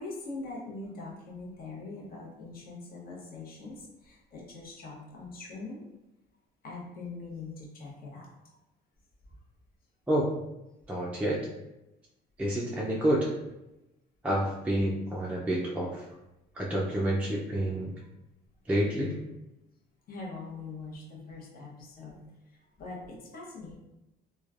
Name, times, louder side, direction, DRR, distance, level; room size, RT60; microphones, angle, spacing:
voice 1, 0.0-3.7 4.0-5.8 6.6-8.3 20.1-22.2 22.8-23.8, left 3 dB, 50° left, -3 dB, 0.9 m, -42 dB
voice 2, 10.9-11.4 12.4-13.3 14.2-16.0 16.6-17.9 18.7-19.2, right 1 dB, 5° right, -4 dB, 0.4 m, -28 dB
3.1 x 2.2 x 2.4 m, 0.94 s
cardioid pair, 100°, 19 cm